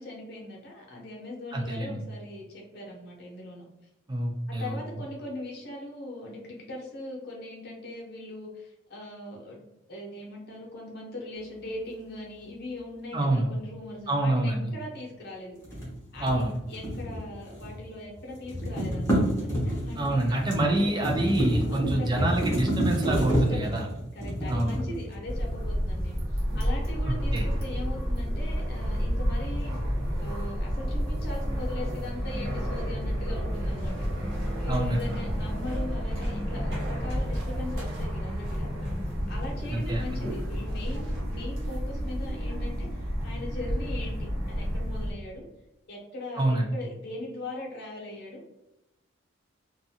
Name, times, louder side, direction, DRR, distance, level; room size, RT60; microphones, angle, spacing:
voice 1, 0.0-3.6 4.5-9.6 9.9-15.8 16.1-20.9 21.7-22.3 23.0-23.8 24.1-26.2 26.5-38.7 39.3-45.4 45.9-48.4, left 2 dB, 50° left, -2 dB, 0.8 m, -40 dB
voice 2, 1.5-2.0 4.1-4.8 13.1-13.5 14.1-14.7 16.2-16.5 20.0-23.9 24.5-24.8 27.3-27.5 34.7-35.1 39.7-40.0 46.4-46.7, right 1 dB, 20° right, 0 dB, 0.4 m, -27 dB
sound 1, 15.6-17.9 18.1-25.4, equal, 15° left, 0.7 m, -29 dB
sound 2, 25.3-45.1, equal, 85° right, 1.1 m, -30 dB
sound 3, 33.6-41.2, equal, 55° right, 0.9 m, -41 dB
2.5 x 2.4 x 2.7 m, 0.90 s
head